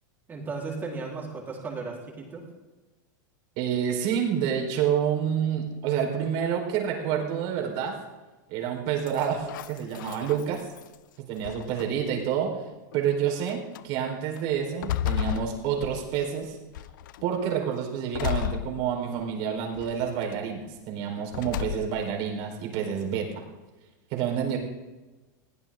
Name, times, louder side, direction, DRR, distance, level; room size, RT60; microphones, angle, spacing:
voice 1, 0.3-2.5, right 4 dB, 15° right, -2 dB, 4.3 m, -35 dB
voice 2, 3.6-8.0 8.5-10.7 11.2-12.6 12.9-16.6 17.2-23.4 24.1-24.6, right 8 dB, 50° right, 1 dB, 4.5 m, -28 dB
sound 1, 9.1-10.9 11.4-12.2 12.9-13.0 13.5-13.8 14.4-16.3 16.7-17.3 18.1-19.3 19.7-20.3 21.3-22.1, left 12 dB, 75° left, 0.6 m, -33 dB
22.0 x 16.0 x 3.9 m, 1.2 s
supercardioid pair, 150°, 11 cm